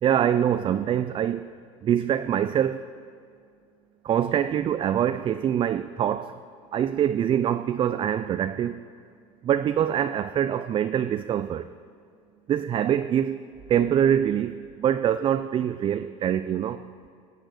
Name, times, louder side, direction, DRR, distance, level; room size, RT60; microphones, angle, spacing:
voice 1, 0.0-1.5 1.8-2.9 4.0-6.3 6.7-8.8 9.4-11.7 12.5-13.4 13.7-16.8, right 9 dB, 35° right, 0.4 m, -24 dB
17.0 x 8.9 x 6.5 m
supercardioid pair, 105°, 16 cm